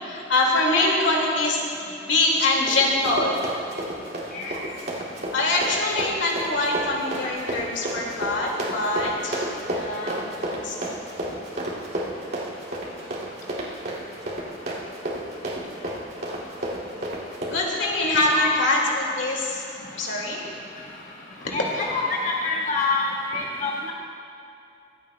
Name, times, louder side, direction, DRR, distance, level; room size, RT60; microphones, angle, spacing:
voice 1, 0.0-3.4 5.3-10.9 17.5-19.6 19.9-20.4, left 2 dB, 80° left, -2 dB, 2.1 m, -24 dB
voice 2, 0.7-1.0 4.3-4.6 18.0-18.7 21.5-23.9, left 3 dB, 45° left, -3 dB, 1.0 m, -27 dB
Run, 2.3-17.6, right 1 dB, 55° right, 2.3 m, -31 dB
24.0 x 9.2 x 2.2 m, 2.7 s
head